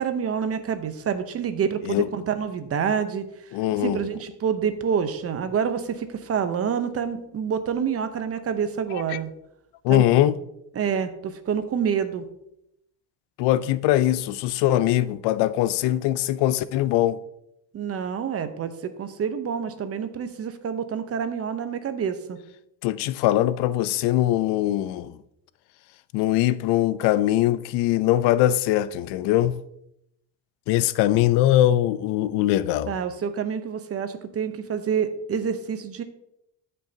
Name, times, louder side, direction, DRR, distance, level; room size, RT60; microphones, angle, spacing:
voice 1, 0.0-3.2 3.8-9.3 9.9-10.1 10.7-12.3 17.7-22.4 32.9-36.0, right 7 dB, 35° right, 0.8 m, -27 dB
voice 2, 3.5-4.0 8.9-9.2 9.8-10.4 13.4-17.2 22.8-25.2 26.1-29.6 30.7-32.9, left 13 dB, 85° left, 0.6 m, -22 dB
13.0 x 5.4 x 2.8 m
cardioid pair, 125°, 40 cm